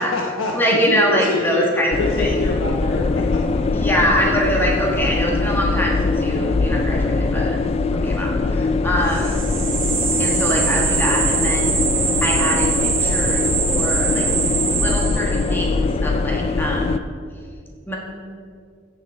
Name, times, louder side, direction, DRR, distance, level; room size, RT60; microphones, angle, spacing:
voice 1, 0.0-4.2 14.3-14.8, left 2 dB, 80° left, 0 dB, 1.0 m, -27 dB
voice 2, 0.5-2.4 3.7-7.6 7.9-9.4 10.2-11.7 12.2-14.3 14.8-17.0 17.9-18.0, equal, 10° left, -2 dB, 1.4 m, -23 dB
sound 1, 1.9-17.0, left 3 dB, 30° left, 0.3 m, -22 dB
sound 2, 9.1-15.6, right 6 dB, 45° right, 2.2 m, -23 dB
15.0 x 7.5 x 4.6 m, 2.2 s
head